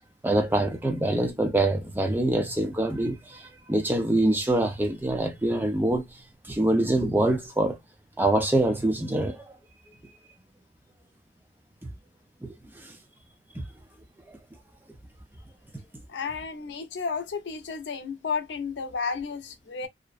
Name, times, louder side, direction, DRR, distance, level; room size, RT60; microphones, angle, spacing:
voice 1, 0.2-6.1 6.4-7.8 8.2-9.5 11.8-11.9 12.4-13.0 13.5-13.6, right 1 dB, 10° right, 0.5 m, -25 dB
voice 2, 16.1-19.9, left 5 dB, 85° left, 0.5 m, -32 dB
2.5 x 2.1 x 2.3 m
head